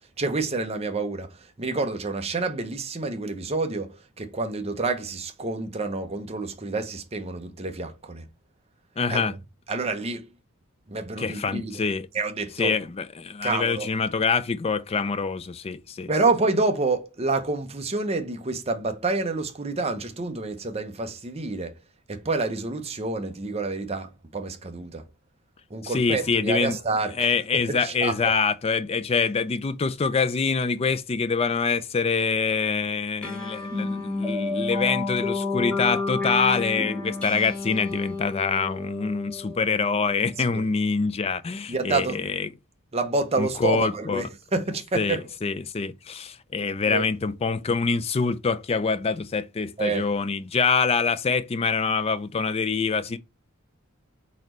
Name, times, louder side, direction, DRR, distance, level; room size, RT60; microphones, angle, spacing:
voice 1, 0.2-8.2 9.1-9.3 9.7-10.3 10.9-11.8 12.1-12.7 13.4-13.9 16.1-21.7 22.1-25.1 25.7-27.3 27.6-28.3 40.4-40.6 41.7-42.3 42.9-45.3 46.9-47.1 49.8-50.1, right 3 dB, 30° right, 0.8 m, -28 dB
voice 2, 9.0-9.3 11.2-12.1 12.6-16.1 25.8-26.8 27.2-42.5 43.4-44.3 44.9-53.2, left 5 dB, 30° left, 0.4 m, -25 dB
sound 1, 33.2-40.1, left 3 dB, 5° left, 1.1 m, -30 dB
4.2 x 3.9 x 3.0 m
head